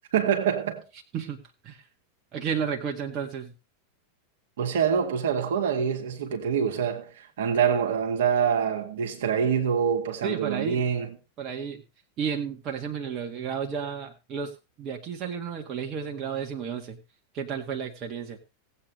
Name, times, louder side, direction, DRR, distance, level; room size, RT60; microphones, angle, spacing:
voice 1, 0.1-0.8 4.6-11.1, right 7 dB, 60° right, 2.0 m, -25 dB
voice 2, 1.1-1.9 2.3-3.5 10.2-10.8 11.4-11.8 12.2-17.0 17.3-18.4, right 7 dB, 35° right, 1.8 m, -32 dB
18.0 x 8.4 x 3.3 m
figure-of-eight pair, 90°, 0 cm